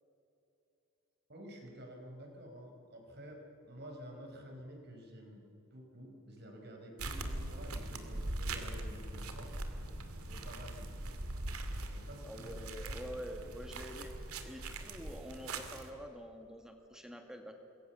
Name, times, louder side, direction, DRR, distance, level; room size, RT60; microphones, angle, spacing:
voice 1, 1.3-3.4 3.7-9.5 10.2-11.0 11.8-12.8, equal, 45° right, 2 dB, 5.0 m, -50 dB
sound 1, 7.0-15.9, right 2 dB, 90° right, 2.4 m, -41 dB
voice 2, 12.2-14.1 14.4-17.6, equal, 5° right, 4 dB, 2.0 m, -47 dB
27.0 x 22.0 x 7.0 m, 2.9 s
head